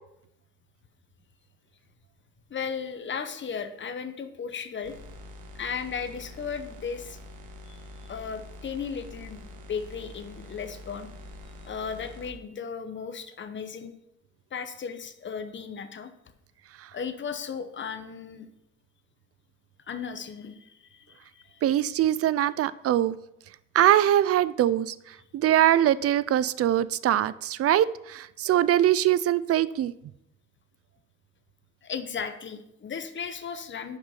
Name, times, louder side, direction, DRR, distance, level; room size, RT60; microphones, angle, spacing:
voice 1, 2.5-5.0 5.5-7.2 7.7-7.8 8.0-9.4 9.7-11.1 11.6-13.9 14.5-16.1 16.9-18.5 19.9-21.8 31.8-34.0, left 6 dB, 40° left, 0.9 m, -36 dB
sound 1, 4.8-12.3, left 1 dB, 85° right, 1.3 m, -45 dB
voice 2, 21.6-23.2 23.7-25.0 25.3-29.9, right 12 dB, 50° right, 0.4 m, -22 dB
5.9 x 5.3 x 5.7 m
cardioid pair, 90°, 30 cm